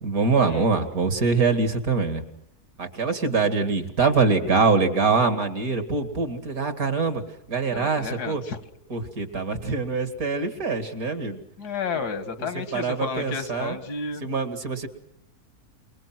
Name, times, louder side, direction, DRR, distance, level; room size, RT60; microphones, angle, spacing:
voice 1, 0.0-2.2 2.8-7.2 7.5-8.4 8.9-11.4 12.7-13.8 14.2-14.9, right 4 dB, 65° right, 8 dB, 2.7 m, -24 dB
voice 2, 7.7-8.6 11.6-14.3, left 5 dB, 90° left, 10 dB, 2.4 m, -31 dB
27.0 x 22.5 x 6.1 m, 0.77 s
omnidirectional pair, 1.7 m